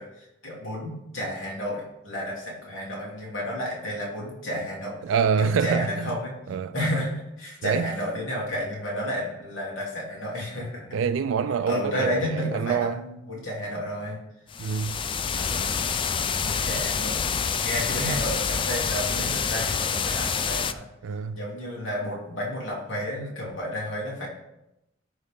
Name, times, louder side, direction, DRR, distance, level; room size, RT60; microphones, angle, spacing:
voice 1, 0.0-5.0 5.4-6.3 6.7-11.0 11.7-14.2 15.4-15.8 16.3-17.2 17.6-20.9 21.3-24.3, equal, 85° left, 2.9 m, -31 dB
voice 2, 5.0-6.1 6.5-6.7 7.6-7.9 10.9-13.0 14.6-15.0 21.0-21.4, right 6 dB, 85° right, 0.3 m, -26 dB
sound 1, 14.5-20.7, left 6 dB, 25° left, 0.3 m, -27 dB
14.0 x 4.8 x 3.6 m
head